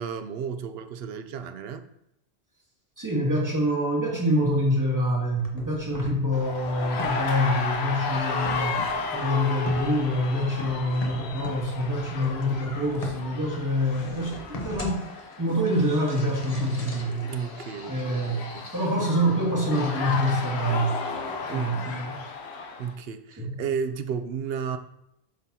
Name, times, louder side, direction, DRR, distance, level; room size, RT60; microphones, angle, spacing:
voice 1, 0.0-1.9 17.3-18.7 21.5-21.9 22.8-24.8, right 6 dB, 70° right, 9 dB, 0.8 m, -33 dB
voice 2, 3.0-8.8 9.1-15.0 15.4-17.3 17.9-18.4 18.7-21.0 21.5-22.2 23.4-23.6, equal, 15° right, -5 dB, 1.9 m, -26 dB
sound 1, 5.4-21.4, left 1 dB, 40° left, 0.9 m, -42 dB
sound 2, 6.3-22.9, left 4 dB, 75° left, 1.0 m, -34 dB
11.5 x 3.8 x 2.8 m, 0.78 s
omnidirectional pair, 1.1 m